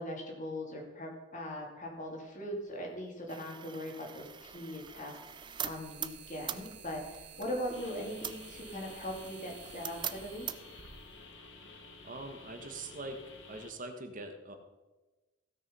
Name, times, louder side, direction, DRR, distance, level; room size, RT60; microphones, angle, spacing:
voice 1, 0.0-10.5, equal, 40° left, 0 dB, 2.8 m, -40 dB
sound 1, 2.6-2.7 4.0-11.9, right 7 dB, 65° right, 1.4 m, -53 dB
sound 2, 3.3-10.8, right 9 dB, 25° right, 0.5 m, -44 dB
sound 3, 7.7-13.7, left 3 dB, 70° left, 1.5 m, -52 dB
voice 2, 11.6-13.2 13.5-14.6, right 2 dB, 45° right, 6 dB, 1.3 m, -43 dB
16.0 x 6.4 x 5.4 m, 1.2 s
head